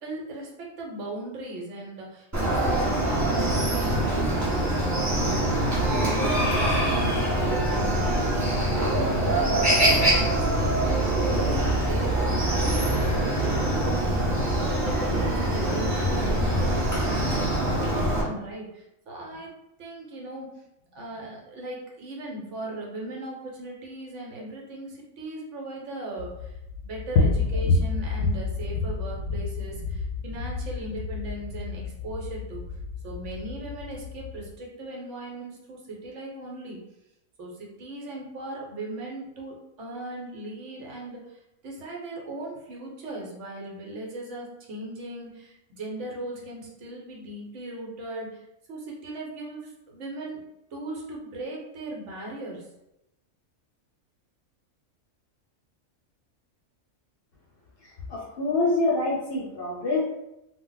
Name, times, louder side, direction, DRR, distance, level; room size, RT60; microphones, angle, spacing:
voice 1, 0.0-5.8 6.0-19.5 19.8-20.5 20.9-26.6 26.8-32.6 33.0-36.8 37.4-48.4 48.7-50.4 50.7-52.7, right 1 dB, 65° right, -2 dB, 1.0 m, -38 dB
Chicken rooster, 2.3-18.2, right 1 dB, 20° right, 0.5 m, -24 dB
sound 1, 26.2-34.5, left 3 dB, 85° left, 1.0 m, -29 dB
voice 2, 57.8-60.0, left 2 dB, 55° left, -4 dB, 0.8 m, -26 dB
2.3 x 2.0 x 3.8 m, 0.87 s
omnidirectional pair, 1.4 m